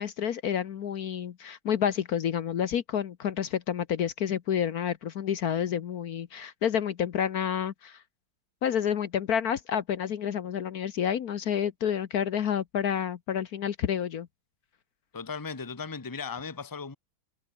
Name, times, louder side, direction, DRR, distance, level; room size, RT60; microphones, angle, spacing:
voice 1, 0.0-8.0 8.6-14.3, left 8 dB, 60° left, 1.3 m, -29 dB
voice 2, 15.1-17.0, left 5 dB, 15° left, 1.1 m, -37 dB
omnidirectional pair, 1.9 m